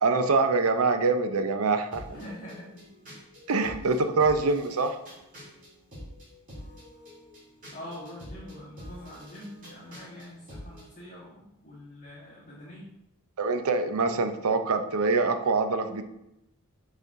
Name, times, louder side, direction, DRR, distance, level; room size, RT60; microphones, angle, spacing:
voice 1, 0.0-2.2 3.5-5.0 13.4-16.0, right 3 dB, 75° right, 8 dB, 0.6 m, -25 dB
sound 1, 1.9-10.9, equal, 40° right, 2.5 m, -46 dB
voice 2, 2.1-3.1 3.8-4.0 7.7-12.9, left 1 dB, 35° left, -7 dB, 1.4 m, -45 dB
6.8 x 4.2 x 3.6 m, 0.85 s
head